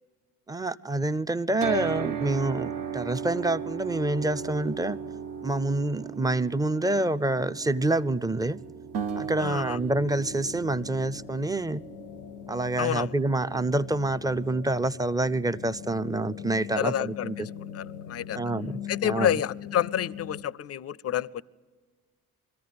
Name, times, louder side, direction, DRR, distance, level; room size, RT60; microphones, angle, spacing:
voice 1, 0.5-5.0 5.4-8.6 9.1-11.8 12.5-17.4 18.3-19.4, right 2 dB, 10° right, 0.5 m, -27 dB
sound 1, 1.6-15.7, right 8 dB, 50° right, 0.8 m, -38 dB
sound 2, 8.9-12.1, right 6 dB, 75° right, 0.9 m, -37 dB
voice 2, 9.4-9.8 12.8-13.1 16.8-17.5 17.7-18.4 18.9-21.4, left 10 dB, 40° left, 0.5 m, -29 dB
sound 3, 9.8-20.4, left 9 dB, 80° left, 0.7 m, -42 dB
22.5 x 14.5 x 9.6 m
hypercardioid pair, 45°, 40 cm